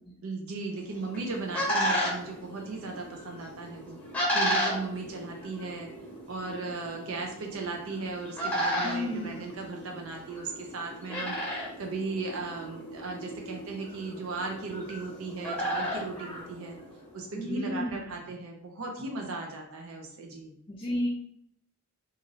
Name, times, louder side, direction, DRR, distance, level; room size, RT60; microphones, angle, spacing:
voice 1, 0.2-4.0 4.3-5.9 6.3-11.4 11.8-16.8 17.1-20.5, right 3 dB, 80° right, 1 dB, 0.5 m, -37 dB
sound 1, 0.9-17.1, equal, 5° left, 1.0 m, -34 dB
voice 2, 8.8-9.5 17.3-18.2 20.7-21.1, left 1 dB, 25° left, -3 dB, 0.4 m, -33 dB
3.0 x 2.5 x 2.6 m, 0.70 s
head